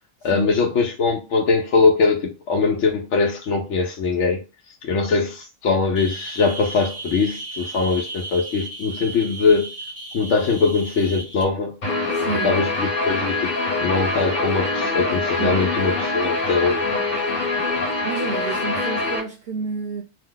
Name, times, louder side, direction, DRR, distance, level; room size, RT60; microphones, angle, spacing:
voice 1, 0.2-9.7 10.1-11.8 12.4-16.8, left 4 dB, 85° left, 0.9 m, -21 dB
sound 1, 6.0-11.4, right 3 dB, 15° right, 0.5 m, -35 dB
Guitar, 11.8-19.2, left 3 dB, 45° left, 1.1 m, -24 dB
voice 2, 12.1-12.6 15.4-15.6 16.9-17.1 17.5-17.8 18.0-20.0, right 6 dB, 65° right, 0.7 m, -30 dB
2.8 x 2.1 x 3.7 m
omnidirectional pair, 1.2 m